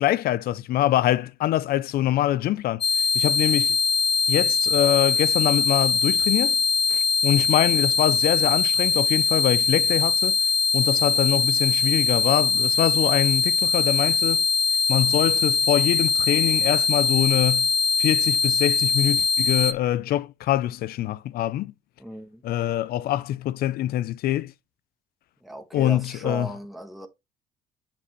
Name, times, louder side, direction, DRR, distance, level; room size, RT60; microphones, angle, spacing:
voice 1, 0.0-3.8 4.3-6.6 6.9-10.4 10.7-14.4 14.9-17.7 18.0-21.7 22.4-24.5 25.7-26.5, left 13 dB, 65° left, 0.5 m, -24 dB
sound 1, 2.8-19.7, left 5 dB, 30° left, 0.7 m, -22 dB
voice 2, 22.0-22.4 25.4-27.1, right 1 dB, ahead, 1.2 m, -36 dB
7.5 x 4.3 x 3.1 m
cardioid pair, 110°, 17 cm